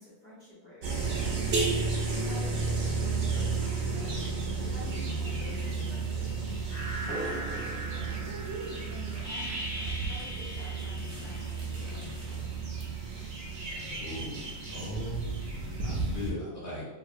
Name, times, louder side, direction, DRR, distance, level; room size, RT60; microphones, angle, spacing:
voice 1, 0.0-4.2 4.6-6.6 7.0-8.3 8.9-12.5, left 1 dB, 45° left, -13 dB, 1.3 m, -49 dB
sound 1, 0.8-16.3, right 4 dB, 70° right, 0.9 m, -33 dB
sound 2, 6.7-12.1, equal, 85° left, 1.4 m, -41 dB
sound 3, 6.7-12.4, right 1 dB, 70° left, 1.0 m, -45 dB
voice 2, 14.0-15.2 15.8-16.9, equal, 15° left, -9 dB, 1.4 m, -38 dB
2.9 x 2.7 x 2.5 m, 1.1 s
omnidirectional pair, 1.2 m